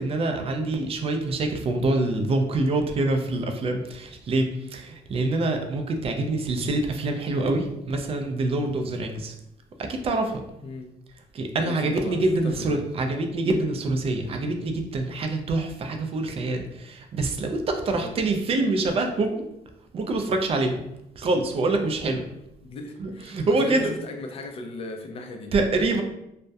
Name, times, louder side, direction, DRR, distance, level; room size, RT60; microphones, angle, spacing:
voice 1, 0.0-9.3 9.8-10.4 11.3-19.5 19.9-20.8 21.2-22.2 23.0-23.9 25.5-26.0, right 2 dB, 35° right, 5 dB, 0.4 m, -25 dB
voice 2, 11.6-12.8 17.9-18.1 22.6-25.5, left 2 dB, 35° left, 4 dB, 0.4 m, -37 dB
2.2 x 2.1 x 2.6 m, 0.85 s
cardioid pair, 110°, 17 cm